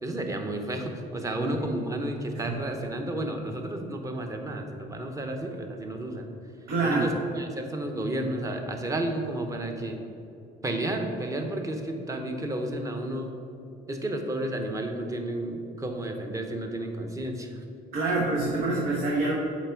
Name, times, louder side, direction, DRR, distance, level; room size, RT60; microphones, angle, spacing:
voice 1, 0.0-6.3 6.8-10.0 10.6-13.3 13.9-17.5 18.1-18.2, right 1 dB, 20° right, 4 dB, 0.8 m, -32 dB
voice 2, 6.7-7.1 17.9-19.3, right 3 dB, 70° right, -3 dB, 1.0 m, -26 dB
7.2 x 4.3 x 4.5 m, 2.6 s
cardioid pair, 110°, 17 cm